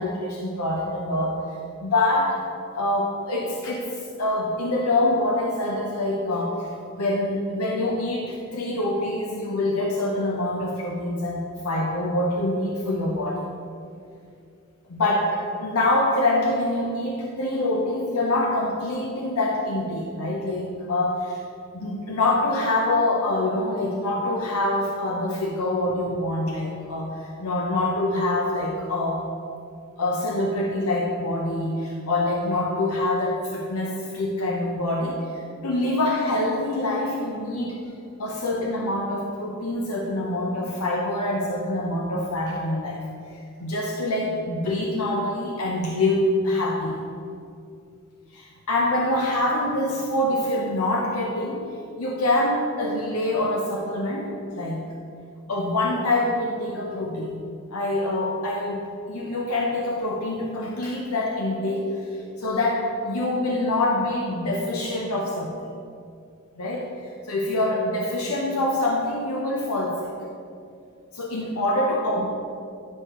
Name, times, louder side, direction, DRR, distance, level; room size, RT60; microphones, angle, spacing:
voice 1, 0.0-1.4 1.8-2.4 2.7-13.5 14.9-21.4 21.7-27.1 27.4-29.2 30.0-37.8 38.2-43.0 43.6-47.0 48.3-51.7 52.0-54.8 55.5-57.4 57.7-61.9 62.4-65.5 66.6-70.1 71.1-72.3, left 1 dB, 85° left, -2 dB, 0.8 m, -25 dB
10.0 x 6.3 x 3.0 m, 2.4 s
head